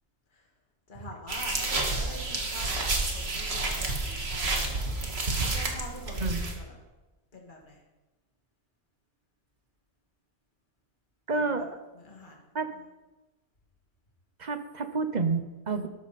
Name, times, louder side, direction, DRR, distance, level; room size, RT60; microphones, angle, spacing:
voice 1, 0.9-4.8 5.4-6.8 7.3-7.8 11.3-11.7 11.9-12.9, left 2 dB, 45° left, 0 dB, 2.2 m, -45 dB
sound 1, 1.3-6.5, right 2 dB, 60° right, 1.9 m, -30 dB
voice 2, 11.3-11.7 12.5-12.7 14.4-15.9, right 4 dB, 40° right, 8 dB, 0.9 m, -29 dB
12.5 x 12.0 x 4.2 m, 1.1 s
omnidirectional pair, 1.2 m